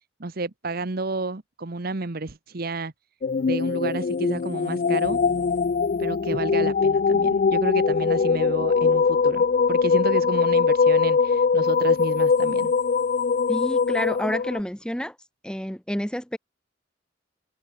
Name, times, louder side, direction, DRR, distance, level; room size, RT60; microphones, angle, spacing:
voice 1, 0.2-2.9 3.5-5.2 6.0-12.7, right 3 dB, 55° right, 1.1 m, -31 dB
sound 1, 3.2-14.6, left 5 dB, 45° left, 0.4 m, -22 dB
Bass guitar, 5.0-14.7, equal, 30° right, 4.3 m, -52 dB
voice 2, 13.5-15.1 15.4-16.4, equal, 5° left, 1.4 m, -29 dB
open air
head